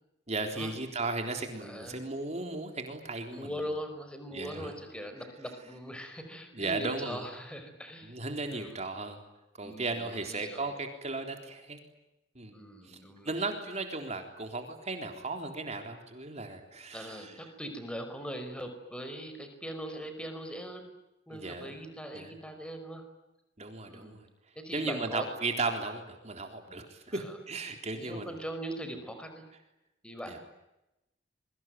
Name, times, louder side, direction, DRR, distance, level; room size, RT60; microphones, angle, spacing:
voice 1, 0.3-3.5 4.3-4.7 6.5-7.3 8.0-9.2 9.6-11.8 12.4-12.5 12.8-13.0 13.3-17.3 21.3-21.7 22.1-22.3 23.6-24.2 24.7-28.3 30.3-30.4, right 3 dB, 40° right, 5 dB, 3.8 m, -36 dB
voice 2, 1.6-2.0 3.3-8.2 8.5-8.8 9.6-10.7 12.5-13.4 16.9-20.9 21.3-23.0 23.9-24.2 24.5-25.3 27.1-27.4 27.9-29.5 30.0-30.4, equal, 5° left, 7 dB, 5.1 m, -41 dB
26.5 x 24.0 x 9.3 m, 0.94 s
head